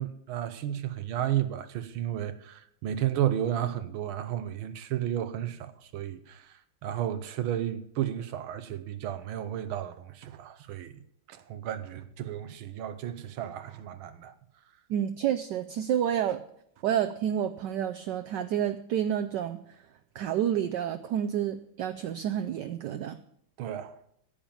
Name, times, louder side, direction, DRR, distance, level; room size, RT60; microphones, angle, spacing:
voice 1, 0.0-11.0 11.3-14.3 23.6-24.0, right 11 dB, 85° right, 1.6 m, -33 dB
voice 2, 14.9-16.4 16.8-19.6 20.1-23.2, right 10 dB, 70° right, 1.1 m, -29 dB
10.5 x 8.7 x 7.2 m
omnidirectional pair, 2.2 m